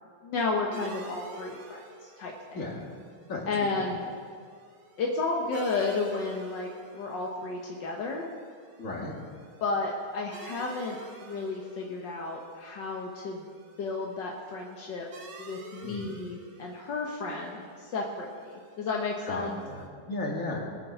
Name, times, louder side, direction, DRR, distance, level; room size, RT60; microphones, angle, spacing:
voice 1, 0.2-2.6 3.5-4.1 5.0-8.3 9.6-13.4 13.8-15.1 15.4-19.6, left 3 dB, 60° left, 0 dB, 1.1 m, -32 dB
sound 1, 0.7-19.9, right 3 dB, 50° right, 1.6 m, -50 dB
voice 2, 8.8-9.1 15.8-16.2 19.3-20.6, left 2 dB, 30° left, -2 dB, 2.2 m, -35 dB
21.0 x 7.7 x 6.2 m, 2.1 s
omnidirectional pair, 3.5 m